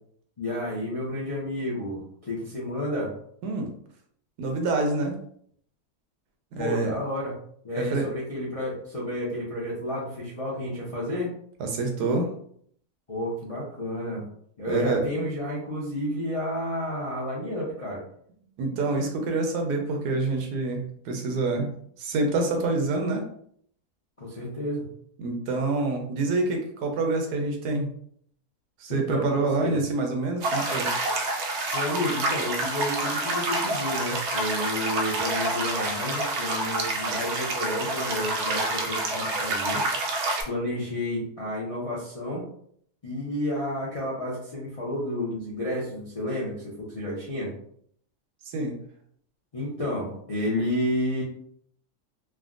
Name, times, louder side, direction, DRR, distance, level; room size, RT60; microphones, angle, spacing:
voice 1, 0.4-3.1 6.6-7.3 7.6-11.3 13.1-14.2 14.6-18.0 24.2-24.9 28.9-29.8 31.7-39.8 40.4-42.4 43.0-47.5 49.5-51.2, left 1 dB, 55° left, -7 dB, 0.4 m, -31 dB
voice 2, 4.4-5.2 6.5-6.9 7.8-8.1 11.6-12.3 14.7-15.3 18.6-21.7 22.0-23.2 25.2-27.9 28.8-30.9 48.4-48.8, right 3 dB, 90° right, 3 dB, 1.2 m, -27 dB
sound 1, 30.4-40.4, right 2 dB, 70° right, 0.6 m, -28 dB
3.4 x 2.2 x 2.4 m, 0.65 s
omnidirectional pair, 1.7 m